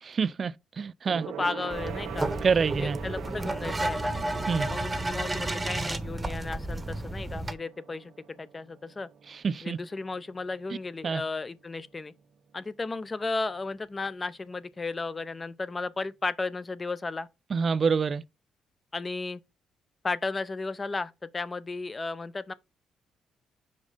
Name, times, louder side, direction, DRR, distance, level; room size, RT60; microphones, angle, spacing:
voice 1, 0.0-1.3 2.4-3.0 4.5-4.7 9.3-9.8 11.0-11.2 17.5-18.2, right 5 dB, 45° right, 0.4 m, -27 dB
Gong, 1.0-10.8 11.1-11.4 11.7-11.8, right 8 dB, 75° right, 0.8 m, -44 dB
voice 2, 1.3-2.3 2.8-4.1 4.6-9.1 9.6-12.1 12.5-17.3 18.9-19.4 20.0-22.5, left 3 dB, 25° left, 0.7 m, -34 dB
sound 1, 1.7-7.5, right 2 dB, 20° right, 1.0 m, -32 dB
5.3 x 5.2 x 5.0 m
cardioid pair, 90°, 0 cm